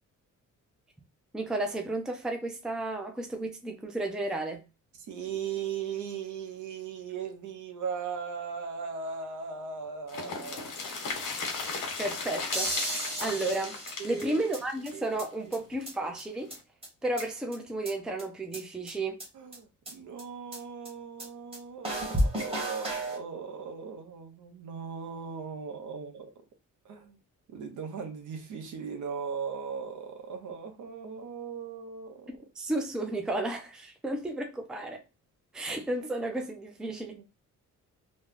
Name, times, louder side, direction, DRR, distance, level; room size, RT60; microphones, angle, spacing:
voice 1, 1.3-4.6 12.0-13.8 14.0-16.5 17.0-19.2 32.6-35.0 35.5-37.2, right 2 dB, ahead, 0.4 m, -33 dB
voice 2, 5.0-10.7 14.0-14.5 14.9-15.6 19.3-26.3 26.8-27.2 27.5-32.4 36.9-37.2, right 6 dB, 70° right, 0.9 m, -38 dB
sound 1, 10.1-15.8 16.1-16.2 16.5-16.6, left 4 dB, 80° left, 1.1 m, -36 dB
sound 2, 12.5-14.6 14.9-15.0 15.2-15.3 15.5-15.6 15.9-16.0 16.2-16.3 16.5-16.6 16.8-17.6 17.9-18.0 18.2-18.3 18.5-18.6 18.9-19.0 19.2-19.3 19.5-19.6 19.9-20.0 20.2-20.3 20.5-20.6 20.9-21.0 21.2-21.3 21.5-21.6 21.8-23.2, right 1 dB, 20° right, 1.1 m, -32 dB
3.1 x 2.2 x 3.7 m
cardioid pair, 175°, 31 cm